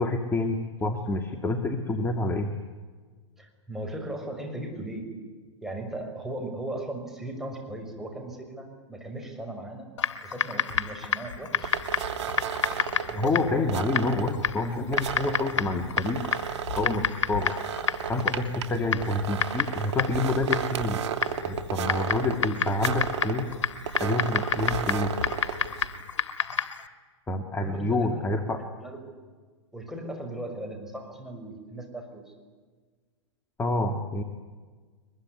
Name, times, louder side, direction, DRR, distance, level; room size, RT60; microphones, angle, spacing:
voice 1, 0.0-2.5 13.2-16.3 16.8-17.6 18.1-21.0 21.4-23.5 24.0-25.1 27.3-28.6 33.6-34.2, left 2 dB, 15° left, 6 dB, 2.2 m, -28 dB
voice 2, 3.4-5.1 5.6-9.9 10.2-11.8 13.0-13.8 15.2-15.5 18.9-19.1 27.6-29.0 29.7-32.2, right 1 dB, ahead, 2 dB, 6.4 m, -38 dB
Typing, 10.0-26.9, left 7 dB, 80° left, 2.1 m, -31 dB
sound 1, 11.6-26.0, right 7 dB, 70° right, 2.8 m, -34 dB
23.5 x 22.0 x 9.8 m, 1.4 s
hypercardioid pair, 115°, 15 cm